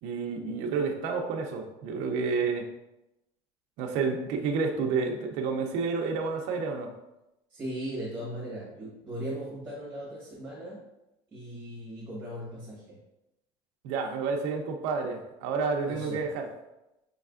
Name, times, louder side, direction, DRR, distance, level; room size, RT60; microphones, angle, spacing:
voice 1, 0.0-2.7 3.8-6.9 13.8-16.5, right 4 dB, 60° right, 2 dB, 0.5 m, -30 dB
voice 2, 7.5-10.8 11.3-13.0 15.8-16.2, right 1 dB, 15° right, -6 dB, 1.1 m, -38 dB
5.2 x 3.2 x 2.4 m, 0.92 s
cardioid pair, 160°, 13 cm